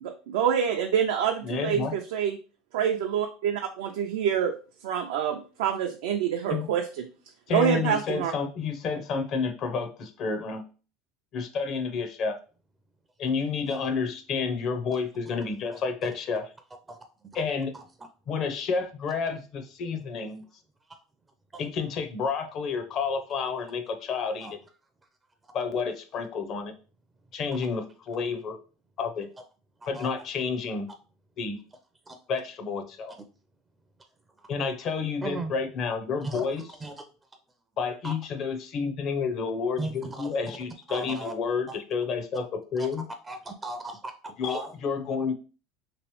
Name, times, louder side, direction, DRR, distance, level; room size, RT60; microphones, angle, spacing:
voice 1, 0.0-2.4 2.7-4.5 4.8-7.1 7.5-8.3, right 8 dB, 80° right, 3 dB, 0.4 m, -26 dB
voice 2, 1.4-1.9 6.5-6.7 7.5-10.6 11.3-12.4 13.2-16.5 17.3-17.7 18.3-20.4 21.6-24.6 25.5-26.7 27.3-28.6 29.0-29.3 29.9-30.9 31.4-31.6 32.3-33.1 34.5-36.7 37.8-43.0 44.4-45.3, left 5 dB, 50° left, 9 dB, 0.6 m, -30 dB
voice 3, 35.2-35.5 36.2-36.5 36.8-37.0 38.0-38.1 39.8-40.3 40.9-41.3 42.8-42.9 43.3-44.7, right 2 dB, 15° right, 6 dB, 0.4 m, -36 dB
3.0 x 2.9 x 3.0 m, 0.36 s
supercardioid pair, 110°, 0 cm